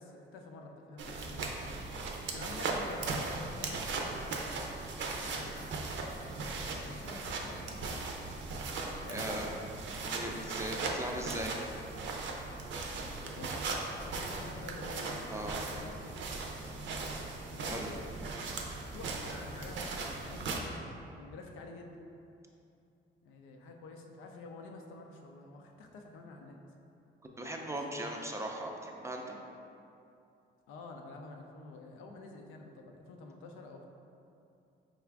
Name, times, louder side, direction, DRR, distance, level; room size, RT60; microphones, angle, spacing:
voice 1, 0.0-1.9 2.3-4.6 5.2-5.7 6.4-8.2 9.0-9.5 10.5-11.2 12.9-13.7 13.9-16.2 17.5-18.1 18.7-22.0 23.2-26.6 27.9-28.2 30.7-33.9, left 3 dB, 90° left, 2 dB, 0.5 m, -49 dB
sound 1, 1.0-20.6, right 3 dB, 70° right, 0.5 m, -38 dB
voice 2, 9.1-9.5 10.0-11.5 15.3-15.6 17.7-17.9 27.4-29.4, right 1 dB, 15° right, 1 dB, 0.4 m, -39 dB
4.9 x 2.4 x 3.4 m, 2.7 s
cardioid pair, 90°, 20 cm